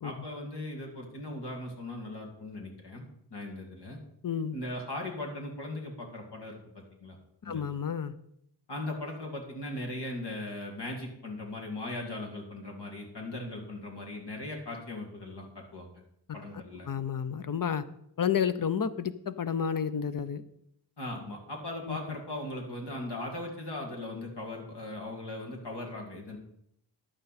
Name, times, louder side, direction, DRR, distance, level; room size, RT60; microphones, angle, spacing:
voice 1, 0.0-3.0 3.3-4.0 4.5-7.2 7.4-7.6 8.7-15.9 16.3-16.9 21.0-26.4, left 1 dB, 70° left, 0 dB, 2.3 m, -39 dB
voice 2, 4.2-4.6 7.4-8.1 16.9-17.8 18.2-20.4 21.9-22.0, left 7 dB, 50° left, 13 dB, 0.8 m, -30 dB
11.0 x 9.0 x 4.2 m, 0.72 s
cardioid pair, 60°, 42 cm